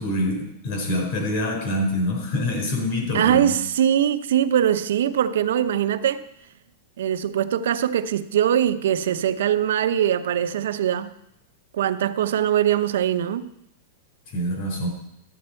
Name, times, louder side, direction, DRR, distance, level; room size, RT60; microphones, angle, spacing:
voice 1, 0.0-3.5 14.3-14.9, left 1 dB, 50° left, 4.6 m, -25 dB
voice 2, 3.1-6.2 7.0-11.1 11.7-13.5, right 10 dB, 80° right, 0.7 m, -22 dB
13.0 x 8.6 x 4.5 m
supercardioid pair, 155°, 0 cm